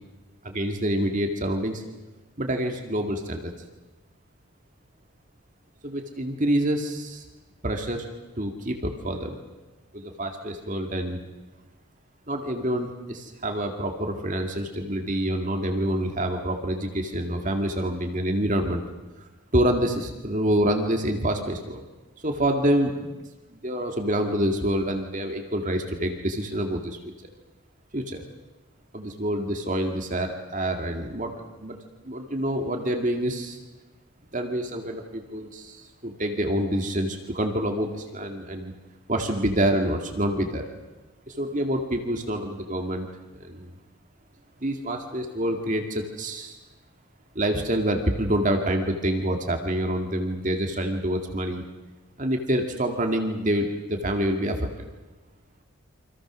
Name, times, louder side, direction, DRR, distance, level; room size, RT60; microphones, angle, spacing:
voice 1, 0.4-1.8 2.4-3.5 5.8-7.2 7.6-8.1 8.4-9.4 9.9-11.2 12.3-18.8 19.5-21.8 22.2-23.2 23.5-27.0 27.9-28.2 28.9-31.8 32.0-33.6 34.3-38.7 39.1-40.7 41.3-43.1 43.3-43.7 44.6-46.6 47.4-51.6 52.2-54.7, right 1 dB, 35° right, 3 dB, 2.1 m, -27 dB
28.5 x 25.5 x 6.3 m, 1.2 s
head